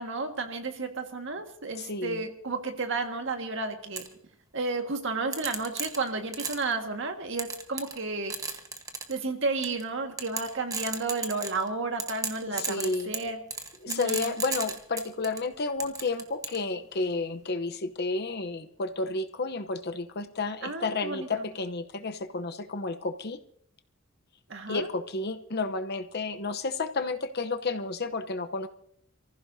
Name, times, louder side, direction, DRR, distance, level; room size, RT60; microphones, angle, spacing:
voice 1, 0.0-4.0 4.5-8.3 9.1-13.4 13.9-14.3 20.6-21.5 24.5-24.9, right 3 dB, 65° right, 5 dB, 1.8 m, -32 dB
voice 2, 1.8-2.2 12.5-13.1 13.8-23.4 24.7-28.7, left 3 dB, 50° left, 8 dB, 0.9 m, -31 dB
sound 1, 4.0-4.1 5.3-6.7 7.4-8.0 8.3-9.2 9.6-9.8 10.2-11.7 12.0-15.4 15.8-16.6, right 4 dB, 15° right, 1.3 m, -34 dB
28.5 x 15.0 x 2.8 m, 0.67 s
head